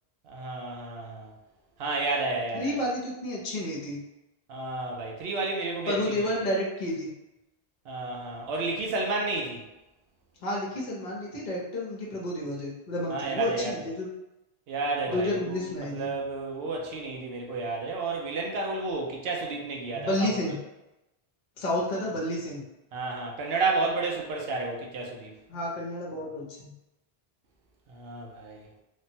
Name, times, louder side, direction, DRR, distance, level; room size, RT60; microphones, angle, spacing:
voice 1, 0.2-1.3 1.8-2.8 4.5-6.3 7.9-9.6 13.1-13.7 14.7-20.3 22.9-25.3 27.9-28.7, right 3 dB, 75° right, -1 dB, 0.9 m, -31 dB
voice 2, 2.5-4.0 5.9-7.1 10.4-14.1 15.1-16.1 19.9-20.6 21.6-22.6 25.5-26.7, left 1 dB, 55° left, -3 dB, 0.9 m, -30 dB
3.3 x 2.1 x 2.7 m, 0.95 s
omnidirectional pair, 1.0 m